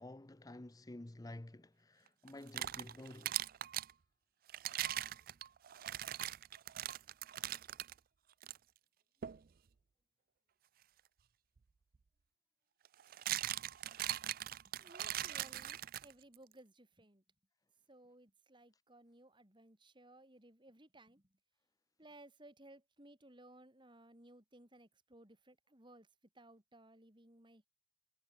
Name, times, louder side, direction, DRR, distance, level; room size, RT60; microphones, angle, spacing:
voice 1, 0.0-3.4, left 1 dB, 20° left, 0.6 m, -51 dB
sound 1, 2.3-3.9 4.5-7.9 8.4-8.6 9.2-9.4 11.6-11.7 12.9-16.4, right 13 dB, 50° right, 0.4 m, -40 dB
voice 2, 14.8-17.2 17.9-21.3 22.0-26.1 26.3-27.7, right 1 dB, 25° right, 3.9 m, -60 dB
head